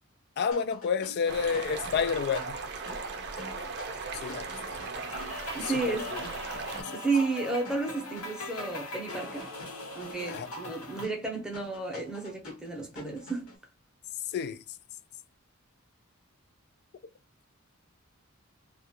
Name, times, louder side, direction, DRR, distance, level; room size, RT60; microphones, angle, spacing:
voice 1, 0.4-2.6 4.2-4.8 5.6-6.2 6.8-6.9 10.3-10.5 14.3-14.6, left 6 dB, 50° left, 0.3 m, -30 dB
sound 1, 0.5-13.6, equal, 90° left, 1.1 m, -47 dB
sound 2, 1.3-6.8, right 4 dB, 50° right, 0.5 m, -38 dB
sound 3, 4.1-11.0, left 2 dB, 65° left, 1.0 m, -41 dB
voice 2, 5.5-6.1 6.9-9.5 9.9-13.5, right 3 dB, 5° right, 0.7 m, -32 dB
2.4 x 2.3 x 2.8 m
head